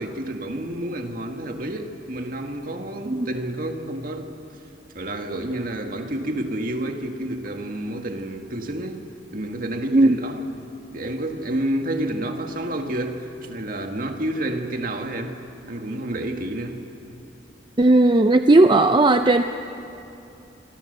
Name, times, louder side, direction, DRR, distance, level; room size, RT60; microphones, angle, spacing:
voice 1, 0.0-4.3 4.9-9.0 9.3-10.4 10.9-15.4 15.7-16.8, right 1 dB, 50° right, 4 dB, 2.0 m, -29 dB
voice 2, 17.8-19.4, right 2 dB, 25° right, 8 dB, 0.5 m, -16 dB
26.0 x 24.5 x 6.8 m, 2.7 s
head